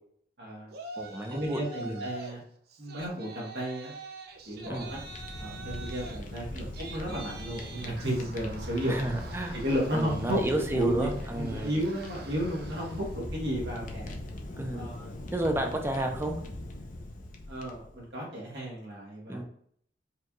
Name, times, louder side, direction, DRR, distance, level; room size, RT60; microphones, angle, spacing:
voice 1, 0.4-0.7 1.3-2.4 2.8-3.9 4.5-5.0 5.4-9.1 9.5-14.1 14.7-15.2 17.5-19.4, equal, 75° right, -4 dB, 1.6 m, -33 dB
Yell, 0.7-2.4 2.7-13.1, right 3 dB, 60° right, 0.4 m, -46 dB
voice 2, 1.0-2.1 4.7-4.9 8.9-9.6 9.9-11.7 14.6-14.9 15.3-16.4 19.3-19.4, right 1 dB, 15° right, 3 dB, 0.6 m, -31 dB
Fire, 4.5-18.0, left 1 dB, 50° left, 0.6 m, -40 dB
4.5 x 2.4 x 3.0 m, 0.63 s
head